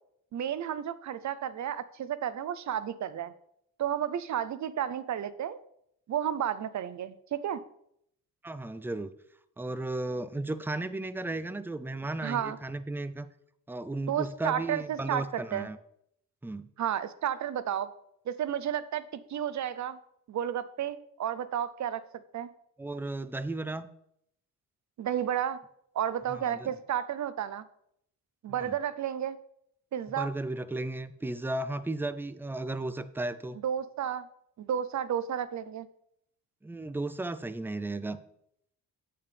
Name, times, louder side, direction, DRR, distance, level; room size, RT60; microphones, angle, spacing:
voice 1, 0.3-3.3 3.8-5.6 6.1-7.6 12.2-12.6 14.1-15.7 16.8-17.9 18.3-20.0 20.3-22.0 22.3-22.5 25.0-25.6 25.9-27.6 28.4-29.4 29.9-30.3 33.6-34.3 34.6-35.9, right 9 dB, 55° right, 15 dB, 0.6 m, -32 dB
voice 2, 8.4-9.1 9.6-13.3 13.7-15.8 16.4-16.7 22.8-23.9 26.3-26.7 28.5-28.7 30.2-33.6 36.6-38.2, right 2 dB, 5° right, 13 dB, 0.4 m, -35 dB
8.8 x 8.6 x 3.4 m, 0.73 s
cardioid pair, 105°, 35 cm